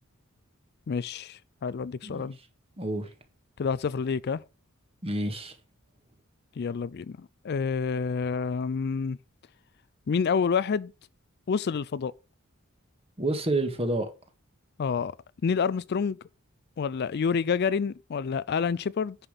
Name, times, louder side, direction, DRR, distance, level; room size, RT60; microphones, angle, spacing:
voice 1, 0.9-2.4 3.6-4.4 6.6-9.2 10.1-10.9 11.5-12.1 14.8-15.2 15.4-16.2 16.8-19.2, left 6 dB, 45° left, 0.4 m, -28 dB
voice 2, 2.8-3.1 5.0-5.6 13.2-14.1, right 2 dB, 25° right, 1.7 m, -29 dB
9.9 x 5.8 x 5.0 m
head